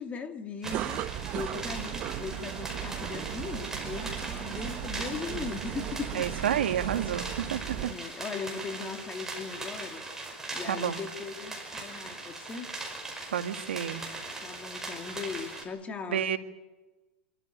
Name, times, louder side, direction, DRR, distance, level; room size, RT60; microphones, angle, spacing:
voice 1, 0.0-6.6 7.9-10.0 10.5-12.7 14.4-16.3, left 5 dB, 20° left, 2.2 m, -39 dB
sound 1, 0.6-15.6, right 2 dB, 10° right, 5.4 m, -40 dB
sound 2, 0.6-7.9, right 12 dB, 35° right, 1.0 m, -36 dB
voice 2, 6.1-7.6 10.7-11.0 13.3-14.0 16.1-16.4, right 9 dB, 90° right, 1.8 m, -29 dB
27.0 x 13.5 x 9.9 m
supercardioid pair, 135°, 6 cm